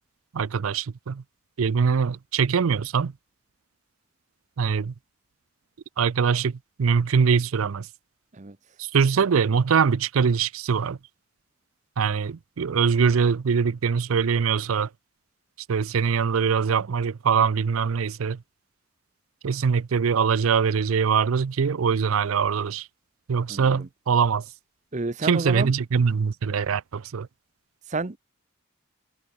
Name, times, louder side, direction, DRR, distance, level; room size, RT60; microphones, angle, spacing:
voice 1, 0.3-1.2 1.6-3.1 4.6-4.9 6.0-7.9 8.8-11.0 12.0-14.9 15.7-18.4 19.4-22.9 23.3-24.4 25.2-27.3, right 6 dB, 85° right, 0.5 m, -23 dB
voice 2, 23.5-23.9 24.9-25.7 27.9-28.2, right 3 dB, 35° right, 0.8 m, -30 dB
head